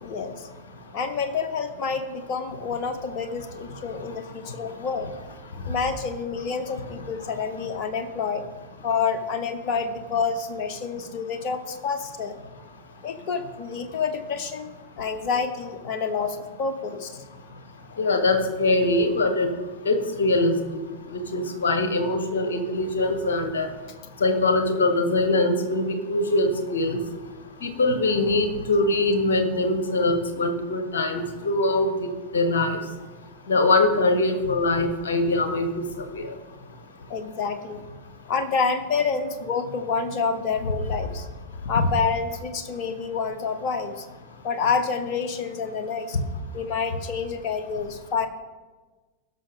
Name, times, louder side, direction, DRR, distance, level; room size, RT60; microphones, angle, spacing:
voice 1, 0.0-0.5 0.9-5.1 5.7-8.5 8.8-12.4 13.0-17.2 37.1-37.8 38.3-41.3 41.7-44.1 44.4-46.2 46.5-48.3, left 5 dB, 40° left, 8 dB, 0.9 m, -28 dB
voice 2, 18.0-19.5 19.9-20.5 21.1-23.7 24.2-27.0 27.6-32.8 33.5-35.7 36.1-36.2 41.8-41.9, left 2 dB, 65° left, 8 dB, 1.2 m, -22 dB
17.0 x 6.1 x 3.6 m, 1.3 s
figure-of-eight pair, 90°, 0 cm